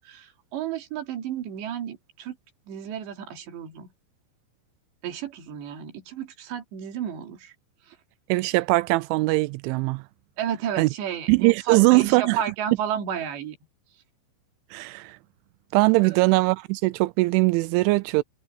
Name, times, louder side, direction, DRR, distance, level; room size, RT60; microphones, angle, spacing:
voice 1, 0.0-2.4 2.7-3.9 5.0-7.5 7.9-8.0 10.4-13.6 16.0-16.2, right 9 dB, 70° right, 5.0 m, -32 dB
voice 2, 8.3-10.0 10.8-10.9 11.3-12.4 14.7-15.2 15.7-18.2, right 23 dB, 85° right, 3.0 m, -21 dB
omnidirectional pair, 5.3 m